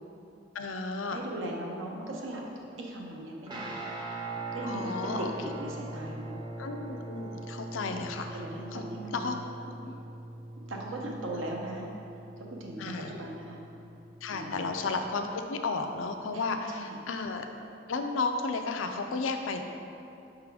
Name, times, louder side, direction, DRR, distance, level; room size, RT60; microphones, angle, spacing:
voice 1, 0.5-1.2 4.6-5.3 6.6-8.4 8.7-8.8 9.1-9.3 9.6-9.9 11.3-11.4 12.8-13.1 14.2-17.5 17.9-19.6, left 3 dB, 90° left, 5 dB, 0.5 m, -33 dB
voice 2, 1.1-2.4 2.8-3.9 4.5-6.4 8.3-9.4 10.6-11.9 12.4-13.6 14.3-14.7 16.3-16.4 16.7-17.0, right 1 dB, 85° right, -1 dB, 0.8 m, -38 dB
Guitar, 3.5-14.9, right 2 dB, 25° right, 0.5 m, -42 dB
5.8 x 3.7 x 4.8 m, 2.7 s
head